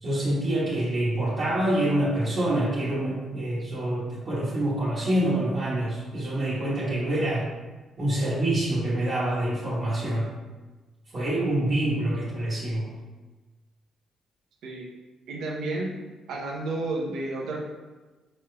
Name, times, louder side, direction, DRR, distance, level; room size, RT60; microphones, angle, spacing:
voice 1, 0.0-7.5 8.0-10.3 11.1-12.9, right 1 dB, 45° right, -10 dB, 1.2 m, -26 dB
voice 2, 15.3-16.0 16.3-17.6, right 2 dB, 80° right, -1 dB, 0.7 m, -31 dB
4.4 x 3.1 x 2.3 m, 1.2 s
cardioid pair, 90°, 0 cm